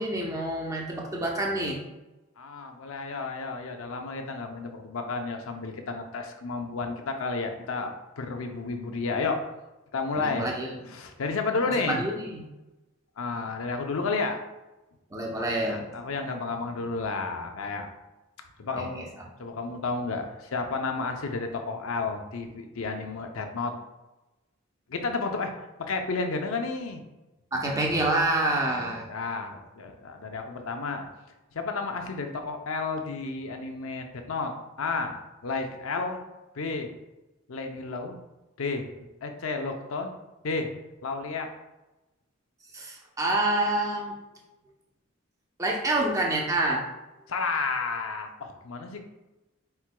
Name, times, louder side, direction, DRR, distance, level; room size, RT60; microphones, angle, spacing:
voice 1, 0.0-1.8 10.2-10.8 11.9-12.4 15.1-15.9 18.8-19.0 27.5-29.1 42.7-44.1 45.6-46.9, right 1 dB, 15° right, -2 dB, 0.7 m, -27 dB
voice 2, 2.4-9.4 9.9-10.5 10.9-12.0 13.2-14.4 15.6-17.9 18.6-19.1 19.4-23.7 24.9-25.5 25.8-27.0 28.6-31.1 31.5-35.2 35.4-36.2 36.5-36.9 37.5-38.2 38.6-40.1 40.4-40.7 41.0-41.5 47.3-49.0, left 4 dB, 85° left, 5 dB, 0.6 m, -31 dB
4.6 x 4.4 x 2.2 m, 1.0 s
head